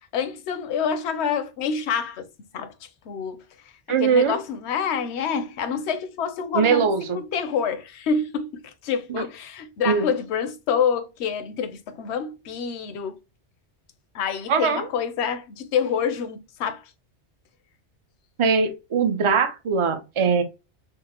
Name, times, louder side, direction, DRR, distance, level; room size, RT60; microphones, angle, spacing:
voice 1, 0.1-2.3 2.5-3.4 4.0-13.2 14.1-16.9, left 6 dB, 75° left, 0.8 m, -27 dB
voice 2, 3.9-4.4 6.5-7.2 9.1-9.3 9.9-10.1 14.5-14.9 18.4-20.4, right 5 dB, 40° right, 0.5 m, -21 dB
3.7 x 2.1 x 2.8 m
omnidirectional pair, 1.2 m